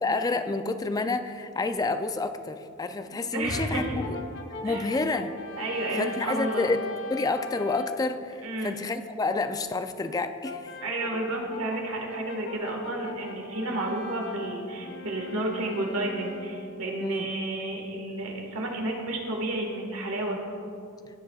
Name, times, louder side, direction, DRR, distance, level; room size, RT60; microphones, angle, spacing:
voice 1, 0.0-4.2 4.6-5.3 5.9-6.8 7.1-10.7 17.0-17.3, left 3 dB, 15° left, 9 dB, 0.3 m, -29 dB
voice 2, 3.1-4.0 4.6-4.9 5.6-6.7 8.4-8.7 10.8-20.4, right 2 dB, 70° right, 1 dB, 1.6 m, -31 dB
Brass instrument, 3.5-8.1 10.4-16.8, left 3 dB, 55° left, 0.8 m, -40 dB
17.0 x 7.4 x 2.4 m, 2.5 s
head